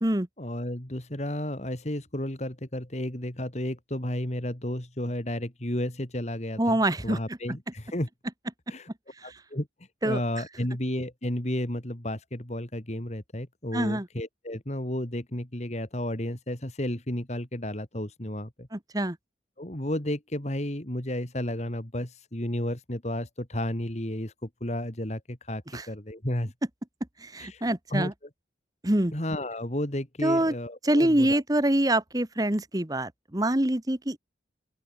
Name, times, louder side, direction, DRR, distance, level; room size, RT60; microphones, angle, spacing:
voice 1, 0.4-8.1 8.7-8.9 9.2-9.7 10.0-18.7 19.6-26.5 27.4-27.6 27.9-28.1 29.1-31.4, left 1 dB, 40° left, 2.8 m, -32 dB
voice 2, 6.6-7.2 10.0-10.2 13.7-14.1 18.7-19.2 25.7-25.8 27.2-28.1 28.8-29.1 30.2-30.5 30.8-34.2, right 1 dB, 20° right, 1.3 m, -25 dB
open air
head